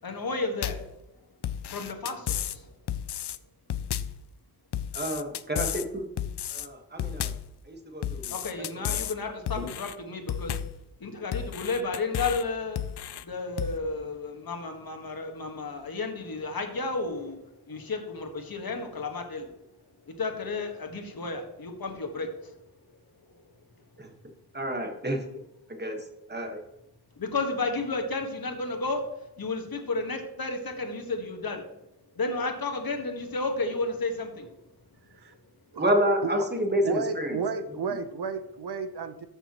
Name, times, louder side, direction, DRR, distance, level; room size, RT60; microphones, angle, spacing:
voice 1, 0.0-0.8 1.7-2.7 8.3-10.6 11.0-12.9 13.2-17.4 17.7-19.5 20.0-22.5 27.2-29.0 29.4-31.6 32.1-34.5, left 3 dB, 60° left, 4 dB, 1.6 m, -32 dB
sound 1, 0.6-0.9 1.4-2.6 2.9-3.4 3.7-4.2 4.7-5.9 6.2-6.7 7.0-7.5 8.0-9.2 9.5-9.9 10.3-10.8 11.3-12.4 12.8-13.2 13.6-13.8, left 10 dB, 80° left, 0.6 m, -32 dB
voice 2, 4.9-6.1 6.5-7.3 7.6-9.0 9.6-9.7 24.0-24.1 24.5-25.2 25.7-26.0 26.3-26.6 35.8-37.4, equal, 25° right, 4 dB, 1.6 m, -29 dB
voice 3, 36.8-39.3, right 6 dB, 75° right, 10 dB, 0.9 m, -32 dB
13.5 x 6.8 x 3.0 m, 0.89 s
wide cardioid pair, 110°, 40 cm